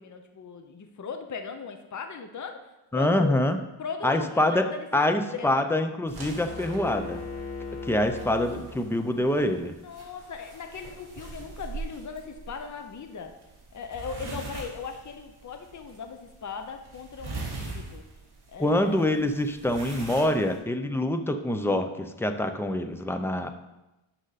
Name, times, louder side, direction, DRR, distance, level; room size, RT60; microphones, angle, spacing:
voice 1, 0.0-2.6 2.9-3.4 3.8-5.6 9.7-13.4 13.7-18.0 18.5-19.2, left 5 dB, 35° left, 6 dB, 0.8 m, -38 dB
voice 2, 2.9-3.6 4.0-4.7 4.9-7.2 7.8-9.7 18.6-23.5, left 1 dB, 5° left, 7 dB, 0.5 m, -25 dB
sound 1, 6.1-20.6, right 3 dB, 50° right, 2.9 m, -43 dB
sound 2, 6.3-9.3, left 3 dB, 80° left, 2.1 m, -38 dB
11.5 x 6.4 x 4.1 m, 0.98 s
wide cardioid pair, 160°, 50 cm